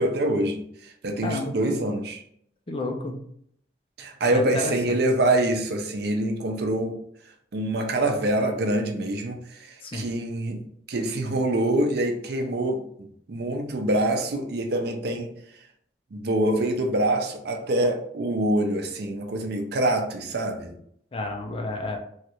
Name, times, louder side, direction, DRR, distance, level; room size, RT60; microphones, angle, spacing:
voice 1, 0.0-2.2 4.0-7.0 7.5-12.9 13.3-15.3 16.1-20.7, right 1 dB, 60° right, 0.5 m, -25 dB
voice 2, 1.2-1.5 2.7-3.2 4.3-5.0 9.8-10.1 21.1-22.0, left 2 dB, 30° left, 0.5 m, -30 dB
3.1 x 2.4 x 2.9 m
head